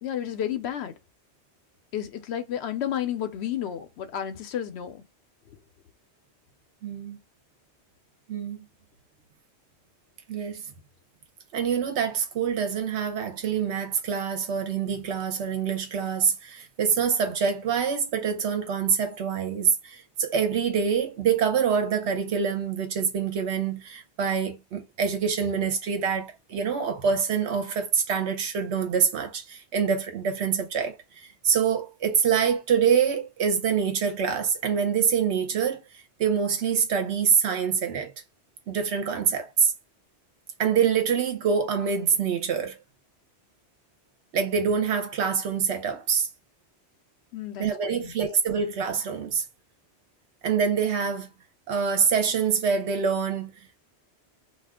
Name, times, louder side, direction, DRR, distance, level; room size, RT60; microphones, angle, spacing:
voice 1, 0.0-0.9 1.9-5.0 47.3-48.1, left 10 dB, 75° left, 0.8 m, -31 dB
voice 2, 6.8-7.2 8.3-8.6 10.3-10.6 11.5-38.1 38.7-39.7 40.6-42.8 44.3-46.3 47.6-49.4 50.4-51.3 51.7-53.5, right 6 dB, 80° right, 1.0 m, -25 dB
2.4 x 2.3 x 3.5 m
omnidirectional pair, 1.1 m